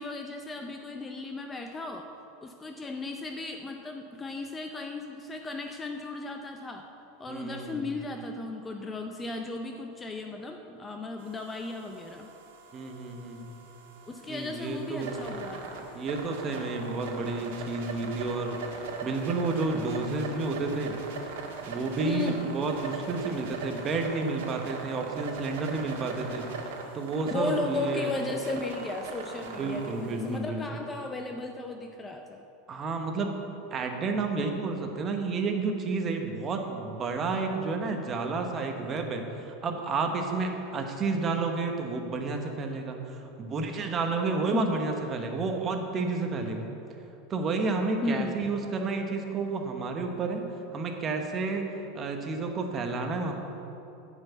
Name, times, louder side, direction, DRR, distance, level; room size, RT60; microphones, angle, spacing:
voice 1, 0.0-2.1 2.4-6.9 7.2-12.3 14.1-15.9 22.0-22.4 27.2-32.4 44.5-44.7 48.0-48.4, left 3 dB, 15° left, 4 dB, 0.5 m, -35 dB
voice 2, 7.3-7.9 12.7-13.5 14.3-15.3 15.9-21.0 21.7-26.5 26.9-28.1 29.6-30.6 32.7-33.4 33.7-46.7 47.3-50.4 50.7-51.6 51.9-53.3, right 3 dB, 25° right, 3 dB, 1.0 m, -31 dB
sound 1, 11.2-30.4, right 4 dB, 75° right, 1.5 m, -40 dB
9.6 x 5.6 x 8.2 m, 2.9 s
supercardioid pair, 155°, 0 cm